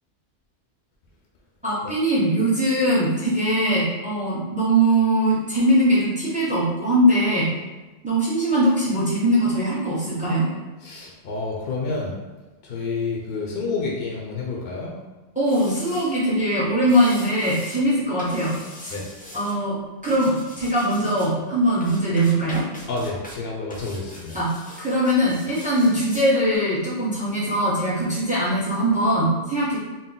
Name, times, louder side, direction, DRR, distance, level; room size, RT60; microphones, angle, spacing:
voice 1, 1.6-7.5 8.0-10.5 15.4-18.9 19.3-22.6 24.3-24.5 24.8-29.8, right 1 dB, 5° right, -7 dB, 0.7 m, -21 dB
voice 2, 10.8-12.2 12.6-14.9 18.9-19.1 22.9-24.4, left 3 dB, 60° left, -2 dB, 0.7 m, -29 dB
sound 1, 15.4-16.1 16.8-17.8 18.2-19.5 20.0-21.3 21.8-23.4 23.7-26.3 26.5-26.6, left 1 dB, 15° left, 0.3 m, -42 dB
3.8 x 2.1 x 3.8 m, 1.2 s
omnidirectional pair, 1.2 m